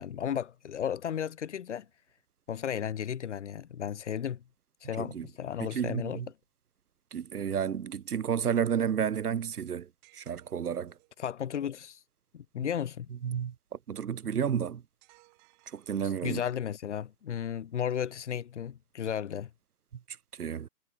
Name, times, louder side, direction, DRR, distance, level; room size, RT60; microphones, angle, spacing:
voice 1, 0.0-1.9 2.5-4.4 4.8-6.2 11.2-12.0 12.3-13.1 16.0-19.5, left 9 dB, 50° left, 2.1 m, -34 dB
voice 2, 5.6-6.3 7.1-10.9 13.2-13.5 13.9-14.8 15.7-16.4 20.4-20.7, right 8 dB, 75° right, 0.9 m, -31 dB
sound 1, 10.0-11.2 15.0-16.6, right 40 dB or more, 25° right, 5.7 m, -63 dB
figure-of-eight pair, 140°, 46 cm